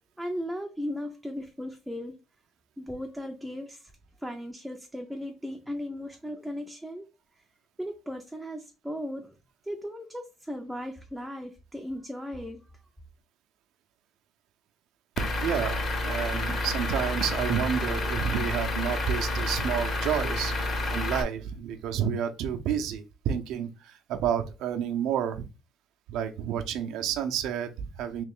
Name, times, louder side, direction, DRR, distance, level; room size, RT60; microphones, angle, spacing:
voice 1, 0.2-2.2 2.8-3.9 4.2-7.1 7.4-7.5 7.8-9.4 9.6-12.9, equal, 5° right, 0.4 m, -37 dB
Truck / Idling, 15.2-21.2, left 2 dB, 35° left, 0.7 m, -29 dB
voice 2, 15.4-25.4 26.1-28.2, right 9 dB, 75° right, 0.5 m, -30 dB
3.2 x 3.0 x 3.5 m
cardioid pair, 175°, 0 cm